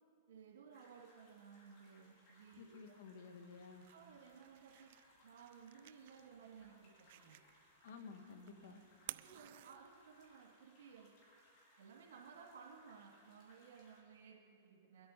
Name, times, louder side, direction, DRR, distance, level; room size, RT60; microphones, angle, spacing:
voice 1, 0.3-2.9 3.9-4.9 5.2-7.4 9.1-11.1 11.8-15.1, right 6 dB, 80° right, -3 dB, 2.1 m, -58 dB
sound 1, 0.7-14.0, left 1 dB, 40° left, 4.4 m, -69 dB
voice 2, 2.6-3.9 7.8-8.8, left 5 dB, 70° left, 6 dB, 1.6 m, -53 dB
sound 2, 3.4-10.4, right 15 dB, 60° right, 0.3 m, -56 dB
22.5 x 8.6 x 5.7 m, 2.6 s
hypercardioid pair, 125°, 0 cm